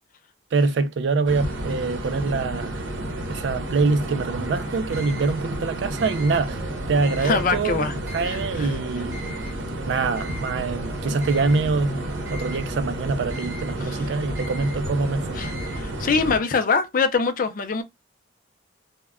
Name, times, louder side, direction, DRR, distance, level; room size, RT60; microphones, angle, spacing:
voice 1, 0.5-2.8 3.3-7.8 8.1-9.2 9.9-15.4, right 3 dB, 65° right, 0.3 m, -24 dB
sound 1, 1.2-16.4, right 1 dB, 90° right, 0.7 m, -31 dB
sound 2, 4.9-15.8, right 1 dB, 15° right, 0.5 m, -42 dB
voice 2, 7.2-7.9 8.2-8.7 13.8-14.2 15.3-17.8, left 4 dB, 45° left, 0.4 m, -24 dB
sound 3, 10.6-16.0, equal, 40° right, 0.9 m, -47 dB
2.1 x 2.1 x 3.5 m
head